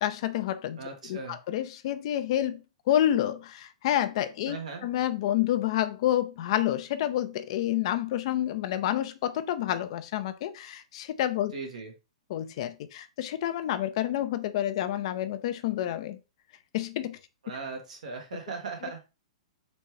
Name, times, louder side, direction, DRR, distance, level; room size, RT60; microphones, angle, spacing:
voice 1, 0.0-0.8 1.1-11.5 12.3-16.2 16.7-17.2 18.8-18.9, left 12 dB, 55° left, 0.5 m, -29 dB
voice 2, 0.8-1.4 4.5-4.8 11.5-11.9 17.4-19.0, right 4 dB, 80° right, 1.6 m, -38 dB
4.1 x 3.4 x 3.2 m
hypercardioid pair, 130°, 4 cm